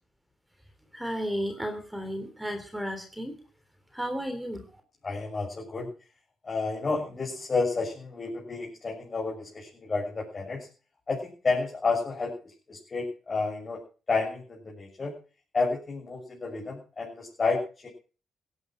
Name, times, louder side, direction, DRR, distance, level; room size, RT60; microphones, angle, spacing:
voice 1, 0.9-3.3 3.9-4.6, equal, 5° right, 6 dB, 3.5 m, -33 dB
voice 2, 5.0-5.9 6.4-10.7 11.1-12.3 12.7-13.8 14.1-15.1 15.5-17.9, left 4 dB, 35° left, -3 dB, 7.0 m, -30 dB
16.5 x 11.0 x 6.3 m, 0.38 s
cardioid pair, 90°, 0 cm